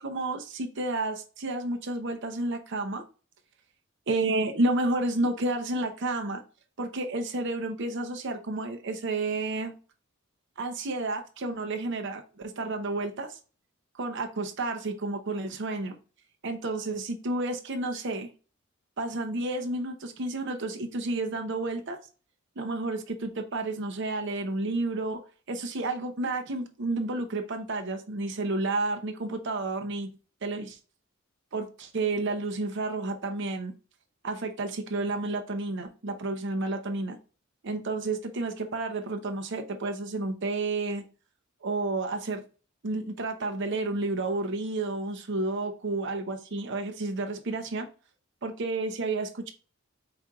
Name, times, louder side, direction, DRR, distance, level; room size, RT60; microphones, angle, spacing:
voice 1, 0.0-3.0 4.1-6.4 6.8-9.7 10.6-13.4 14.0-15.9 16.4-18.3 19.0-22.0 22.6-25.2 25.5-30.1 30.4-30.8 31.5-33.7 34.2-37.2 37.6-41.0 41.6-42.4 42.8-47.9 48.4-49.5, right 2 dB, 60° right, 6 dB, 0.7 m, -31 dB
4.9 x 4.3 x 2.3 m, 0.36 s
head